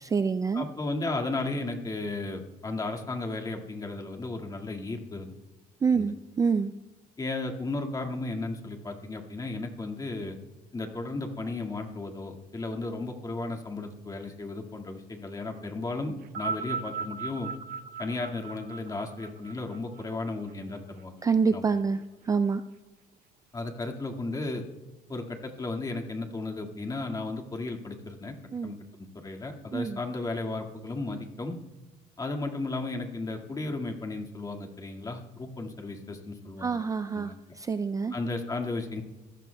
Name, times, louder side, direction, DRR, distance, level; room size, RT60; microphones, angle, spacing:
voice 1, 0.0-0.7 5.8-6.7 21.2-22.0 22.3-22.6 28.5-28.8 29.7-30.0 36.6-38.1, right 5 dB, 20° right, 11 dB, 0.3 m, -27 dB
voice 2, 0.5-5.4 5.9-6.1 7.2-10.4 10.7-17.5 18.0-21.2 21.5-21.6 23.5-24.6 25.1-28.3 28.6-31.6 32.2-36.8 37.1-37.3 38.1-39.0, left 2 dB, 25° left, 3 dB, 1.9 m, -34 dB
sound 1, 16.2-20.8 21.7-21.8, right 5 dB, 70° right, 0.8 m, -37 dB
27.5 x 15.0 x 2.3 m, 1.1 s
cardioid pair, 110°, 16 cm